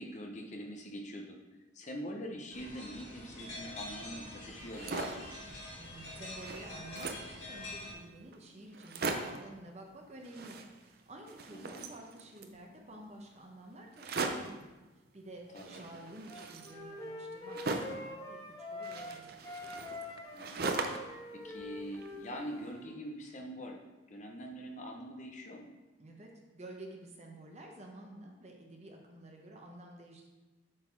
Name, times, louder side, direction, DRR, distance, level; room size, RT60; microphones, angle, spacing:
voice 1, 0.0-1.4 1.7-5.3 11.5-11.9 15.5-15.8 20.3-20.9 21.3-23.8 24.1-25.7, equal, 40° left, 2 dB, 0.7 m, -44 dB
sound 1, 2.5-7.9, left 1 dB, 80° left, 2.2 m, -46 dB
sound 2, 4.6-5.3 5.8-5.9 6.1-7.4 8.0-8.1 8.3-8.4 8.7-9.5 10.2-11.0 11.3-12.6 13.9-14.6 15.6-18.1 18.8-21.2 21.5-22.4, right 3 dB, 55° right, 0.5 m, -39 dB
voice 2, 5.8-14.7 15.1-19.3 26.0-30.3, right 1 dB, 35° right, 1 dB, 1.0 m, -50 dB
Wind instrument woodwind instrument, 16.3-19.2 19.4-22.9, left 2 dB, 20° left, 1.3 m, -45 dB
7.9 x 4.0 x 4.6 m, 1.1 s
head